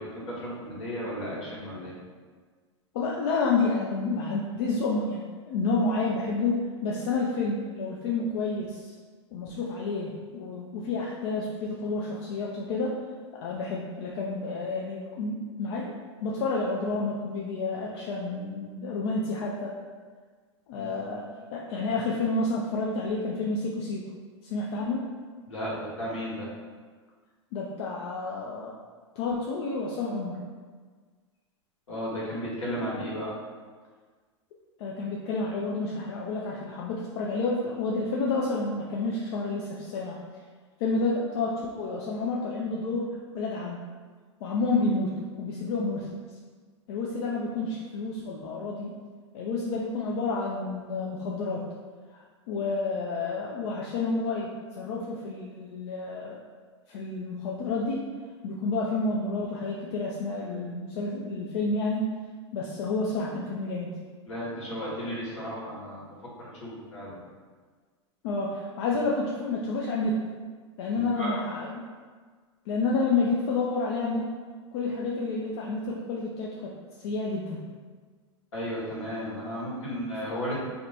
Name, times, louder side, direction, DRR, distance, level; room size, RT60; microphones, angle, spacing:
voice 1, 0.0-1.9 20.7-20.9 25.5-26.5 31.9-33.3 64.2-67.2 71.1-71.4 78.5-80.6, equal, 80° left, -7 dB, 1.4 m, -34 dB
voice 2, 2.9-8.9 9.3-12.9 13.4-15.9 16.2-19.8 20.7-21.2 21.5-24.1 24.4-25.0 27.5-28.7 29.2-30.4 34.8-40.2 40.8-43.9 44.4-46.1 46.9-48.9 49.3-51.7 52.1-52.2 52.5-54.5 54.8-56.4 56.9-58.0 58.4-62.1 62.5-63.9 68.2-70.2 70.8-71.9 72.7-74.3 74.7-76.7 77.0-77.6, left 3 dB, 60° left, -3 dB, 0.5 m, -29 dB
2.8 x 2.2 x 4.0 m, 1.5 s
hypercardioid pair, 100°, 15 cm